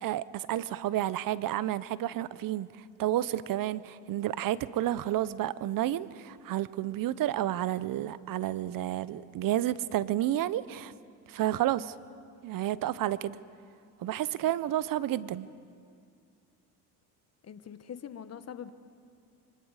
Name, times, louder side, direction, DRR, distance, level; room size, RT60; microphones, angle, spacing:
voice 1, 0.0-2.7 3.0-10.9 11.3-11.9 12.4-13.4 14.0-15.5, right 13 dB, 55° right, 0.8 m, -30 dB
voice 2, 17.4-18.7, left 8 dB, 40° left, 1.2 m, -43 dB
26.0 x 24.0 x 4.9 m
supercardioid pair, 80°, 41 cm